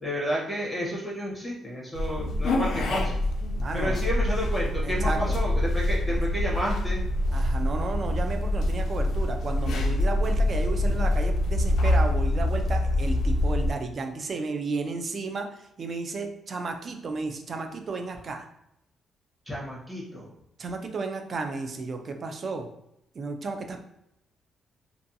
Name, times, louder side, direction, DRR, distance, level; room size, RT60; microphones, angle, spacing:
voice 1, 0.0-3.2 3.7-7.0 19.5-20.2, equal, 5° right, -4 dB, 0.8 m, -31 dB
sound 1, 1.9-13.7, left 1 dB, 65° left, 0.3 m, -25 dB
voice 2, 3.6-4.0 4.8-5.4 6.1-6.3 7.3-18.5 20.6-22.7 23.1-23.8, right 3 dB, 35° right, 5 dB, 0.3 m, -33 dB
2.5 x 2.2 x 2.6 m, 0.79 s
cardioid pair, 155°, 0 cm